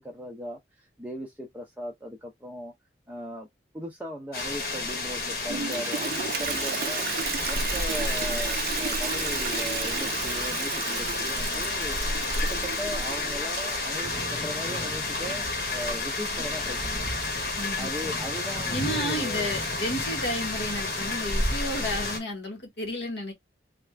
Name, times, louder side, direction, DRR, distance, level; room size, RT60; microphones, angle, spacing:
voice 1, 0.0-2.7 3.1-3.5 3.7-7.0 7.5-12.0 12.4-15.4 15.7-17.2 17.8-19.5, equal, 10° right, 0.7 m, -38 dB
sound 1, 4.3-22.2, left 2 dB, 55° left, 1.4 m, -30 dB
Toilet flush, 5.5-14.0, right 7 dB, 55° right, 0.5 m, -33 dB
voice 2, 17.5-17.9 18.7-23.3, left 1 dB, 75° left, 1.4 m, -32 dB
3.5 x 2.5 x 3.2 m
head